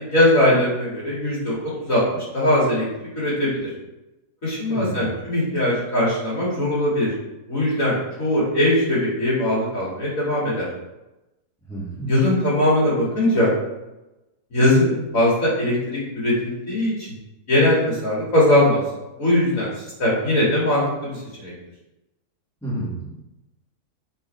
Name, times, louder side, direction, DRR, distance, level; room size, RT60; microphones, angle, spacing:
voice 1, 0.0-2.9 3.2-3.6 4.4-7.1 7.5-10.7 12.1-13.5 14.5-16.9 17.5-18.8 19.2-19.7 20.0-21.5, left 1 dB, 55° left, -7 dB, 3.0 m, -20 dB
voice 2, 4.7-5.2 11.7-12.2 22.6-23.1, right 1 dB, ahead, -9 dB, 2.5 m, -30 dB
6.9 x 5.4 x 3.5 m, 0.98 s
omnidirectional pair, 1.7 m